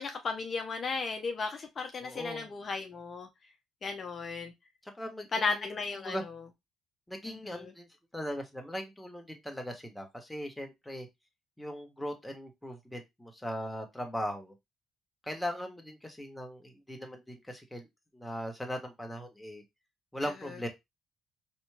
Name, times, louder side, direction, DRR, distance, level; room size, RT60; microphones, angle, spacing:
voice 1, 0.0-3.3 3.8-4.5 5.3-6.2 7.3-7.7, left 4 dB, 45° left, 0.7 m, -35 dB
voice 2, 2.0-2.5 5.0-5.7 6.0-6.2 7.1-7.9 8.1-11.1 11.6-14.5 15.2-17.9 18.1-19.6 20.1-20.7, equal, 5° left, 1.3 m, -39 dB
4.2 x 3.0 x 2.2 m
hypercardioid pair, 55°, 0 cm